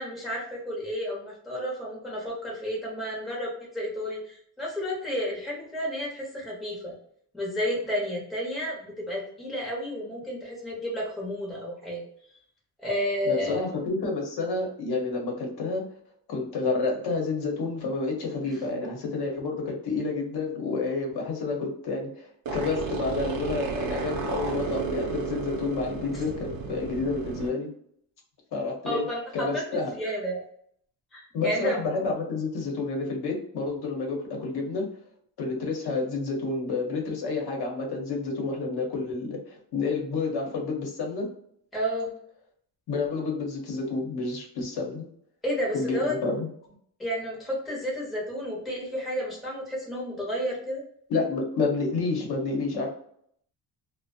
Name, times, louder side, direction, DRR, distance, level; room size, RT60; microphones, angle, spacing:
voice 1, 0.0-6.9 7.3-12.1 12.8-13.6 18.4-18.6 26.1-26.2 28.8-29.2 29.5-29.6 29.9-30.4 31.1-31.8 41.7-42.1 45.4-46.1 47.0-50.8, equal, ahead, -4 dB, 0.6 m, -31 dB
voice 2, 13.2-15.8 16.3-27.7 28.5-29.0 29.3-29.9 31.3-34.8 35.4-41.3 42.9-45.1 45.7-46.5 51.1-52.9, left 3 dB, 65° left, 1 dB, 0.8 m, -29 dB
sound 1, 22.5-27.5, right 5 dB, 55° right, 0.6 m, -33 dB
2.5 x 2.0 x 2.6 m, 0.66 s
cardioid pair, 145°, 42 cm